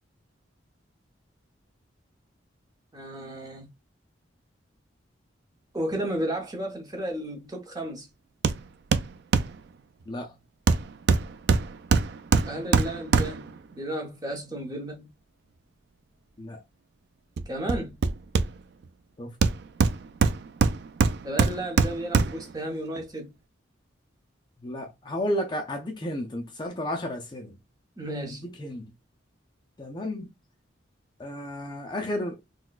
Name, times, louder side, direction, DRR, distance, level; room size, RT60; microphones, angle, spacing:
voice 1, 2.9-3.7 5.7-8.1 12.4-15.1 17.5-18.0 21.2-23.3 28.0-28.4, right 1 dB, 20° right, 0.8 m, -33 dB
Hammer, 8.4-8.6 8.9-9.6 10.7-13.6 17.4-18.8 19.4-22.5 23.0-23.1, right 4 dB, 60° right, 0.3 m, -24 dB
voice 2, 10.1-10.4 16.4-16.6 19.2-19.4 24.6-27.6 28.3-28.9 29.8-30.3 31.2-32.5, left 1 dB, 25° left, 0.4 m, -33 dB
4.0 x 2.2 x 2.3 m
head